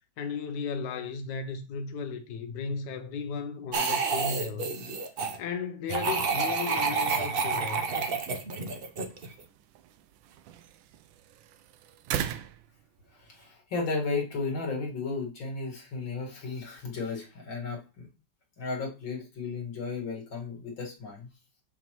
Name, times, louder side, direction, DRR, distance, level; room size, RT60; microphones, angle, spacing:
voice 1, 0.2-4.8 5.4-7.8, left 5 dB, 70° left, 1.2 m, -35 dB
sound 1, 3.7-5.4 5.9-9.4, right 4 dB, 55° right, 0.6 m, -29 dB
sound 2, 6.0-13.5, right 10 dB, 80° right, 1.3 m, -41 dB
voice 2, 13.2-18.1 18.6-21.3, left 4 dB, 85° left, 2.6 m, -34 dB
7.1 x 6.0 x 3.0 m
omnidirectional pair, 2.1 m